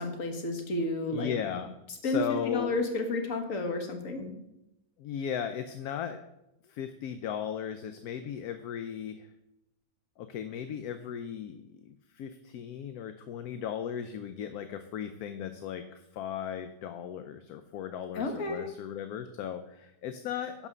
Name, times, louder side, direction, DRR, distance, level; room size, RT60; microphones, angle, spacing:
voice 1, 0.0-1.3 2.0-4.4 18.1-18.6, left 2 dB, 55° left, 5 dB, 1.7 m, -31 dB
voice 2, 1.1-1.7 2.0-2.7 5.0-6.2 6.6-9.3 10.2-20.7, left 8 dB, 70° left, 9 dB, 1.1 m, -36 dB
11.0 x 4.9 x 6.7 m, 0.88 s
omnidirectional pair, 1.8 m